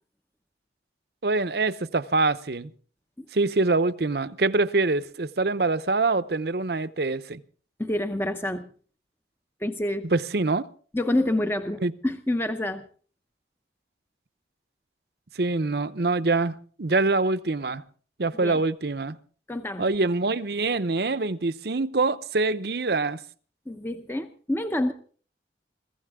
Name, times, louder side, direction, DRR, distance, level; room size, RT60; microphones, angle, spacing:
voice 1, 1.2-2.7 3.3-7.4 10.1-10.7 11.8-11.9 15.3-17.8 18.2-19.2 19.8-23.2, right 3 dB, 60° right, 0.8 m, -25 dB
voice 2, 7.8-8.7 9.6-10.1 10.9-12.9 18.4-18.6 19.5-19.9 23.7-24.9, left 1 dB, 10° left, 0.7 m, -27 dB
22.0 x 15.5 x 3.7 m
head